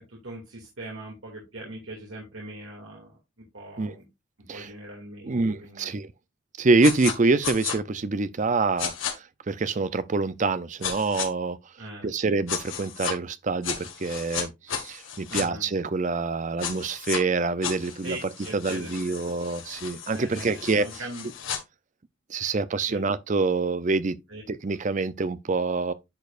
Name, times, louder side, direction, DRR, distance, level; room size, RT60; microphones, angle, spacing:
voice 1, 0.0-3.2 3.5-4.0 4.5-5.9 11.8-12.1 15.3-15.6 18.0-19.4 20.1-21.3 22.9-23.1 24.3-24.4, right 1 dB, 80° right, 2.5 m, -41 dB
voice 2, 5.2-6.1 6.6-11.6 12.0-18.2 18.5-20.9 22.3-24.2 24.5-25.9, right 3 dB, 35° right, 0.5 m, -26 dB
sound 1, 6.8-7.1 7.4-7.8 8.8-9.1 10.8-11.3 12.5-13.1 13.6-15.4 16.6-17.2 17.6-21.6, left 8 dB, 75° left, 1.7 m, -33 dB
10.5 x 5.1 x 2.5 m
head